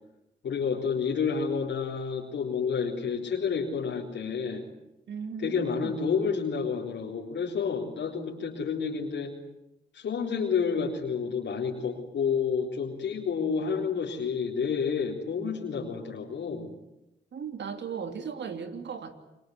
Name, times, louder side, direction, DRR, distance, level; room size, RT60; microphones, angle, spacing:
voice 1, 0.4-4.6 5.4-9.3 9.9-16.8, left 6 dB, 80° left, -2 dB, 4.0 m, -29 dB
voice 2, 5.1-6.0 17.3-19.3, right 6 dB, 75° right, 8 dB, 3.1 m, -37 dB
28.5 x 21.5 x 9.5 m, 0.88 s
cardioid pair, 65°, 18 cm